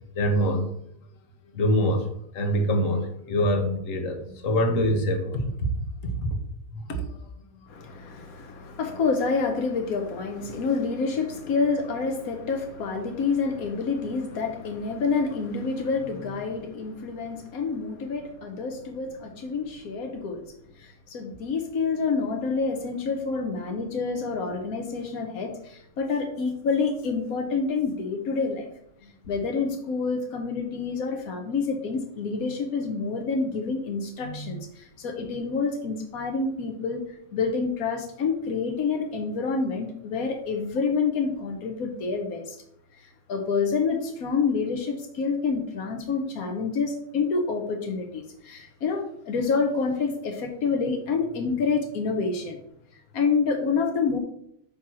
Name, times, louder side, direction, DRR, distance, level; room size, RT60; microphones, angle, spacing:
voice 1, 0.1-0.7 1.5-2.1 2.3-5.7 6.0-6.4 6.7-7.0 29.0-29.1, equal, 65° left, 4 dB, 1.5 m, -25 dB
voice 2, 7.7-20.4 20.8-28.7 29.3-37.0 37.3-42.6 42.9-43.0 43.3-52.6 53.1-54.2, left 4 dB, 85° left, 4 dB, 1.3 m, -28 dB
8.5 x 2.9 x 6.1 m, 0.72 s
omnidirectional pair, 1.5 m